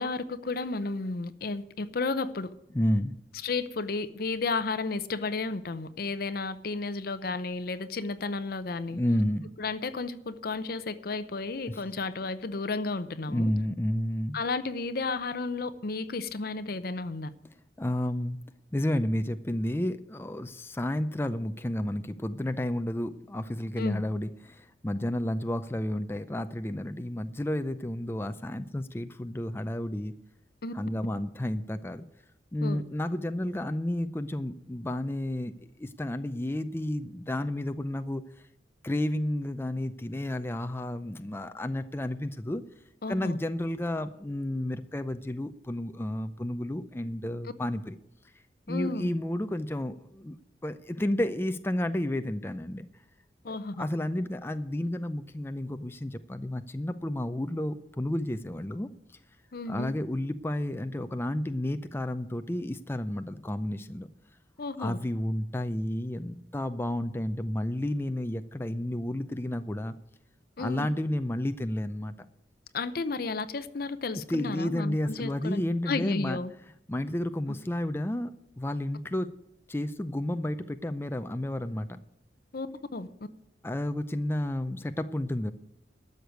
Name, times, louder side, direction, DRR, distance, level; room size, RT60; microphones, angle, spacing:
voice 1, 0.0-2.5 3.4-9.0 9.6-13.5 14.3-17.3 23.8-24.0 30.6-30.7 32.6-32.8 43.0-43.4 48.7-49.1 53.4-53.9 59.5-59.9 64.6-65.0 70.6-70.9 72.7-76.5 82.5-82.7 82.9-83.1, left 3 dB, 55° left, 11 dB, 0.7 m, -33 dB
voice 2, 2.7-3.1 8.9-9.5 11.7-11.8 13.3-14.4 17.8-18.4 18.7-30.1 30.7-32.0 32.5-35.5 35.8-38.2 38.8-42.6 43.1-48.0 48.7-50.4 50.6-52.9 53.5-58.9 59.7-64.1 64.8-69.9 70.6-72.1 74.3-76.4 76.9-79.3 79.7-82.0 83.6-85.5, left 1 dB, 15° left, 9 dB, 0.5 m, -31 dB
12.5 x 6.7 x 9.2 m, 0.80 s
head